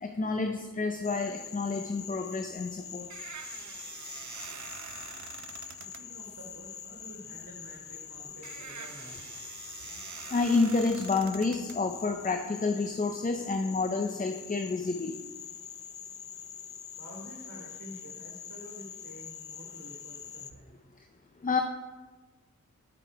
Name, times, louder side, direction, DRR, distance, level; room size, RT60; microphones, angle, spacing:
voice 1, 0.0-3.1 10.3-15.2 21.4-21.6, left 3 dB, 25° left, 5 dB, 0.5 m, -29 dB
Frog, 1.0-20.5, left 8 dB, 80° left, 0.5 m, -45 dB
sound 1, 2.5-12.5, right 8 dB, 65° right, 0.5 m, -46 dB
voice 2, 5.8-9.2 9.8-10.0 17.0-20.8, equal, 80° right, -1 dB, 1.4 m, -49 dB
7.5 x 5.8 x 4.7 m, 1.3 s
wide cardioid pair, 65°, 32 cm